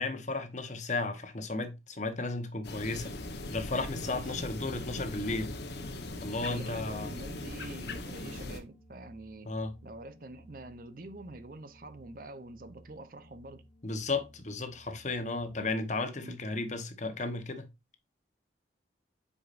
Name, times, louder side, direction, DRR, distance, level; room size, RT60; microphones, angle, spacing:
voice 1, 0.0-3.1 3.5-5.5 6.2-7.1 9.4-9.7 13.8-17.7, left 3 dB, 40° left, 1.0 m, -34 dB
sound 1, 2.6-8.6, left 2 dB, 65° left, 1.1 m, -40 dB
voice 2, 4.0-4.4 6.4-9.5 9.8-13.6 16.2-16.4, right 2 dB, 50° right, 0.7 m, -46 dB
sound 2, 4.5-15.6, equal, 20° right, 1.4 m, -56 dB
8.2 x 4.9 x 2.5 m
head